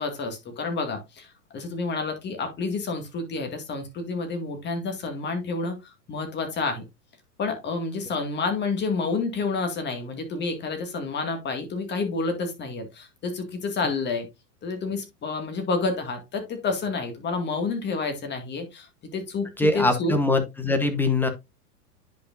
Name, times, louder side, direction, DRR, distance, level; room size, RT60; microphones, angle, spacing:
voice 1, 0.0-6.8 7.4-14.3 14.6-20.2, left 4 dB, 20° left, 6 dB, 2.1 m, -29 dB
voice 2, 19.6-21.3, left 2 dB, 5° left, 8 dB, 1.0 m, -22 dB
10.5 x 5.2 x 2.6 m, 0.22 s
hypercardioid pair, 130°, 48 cm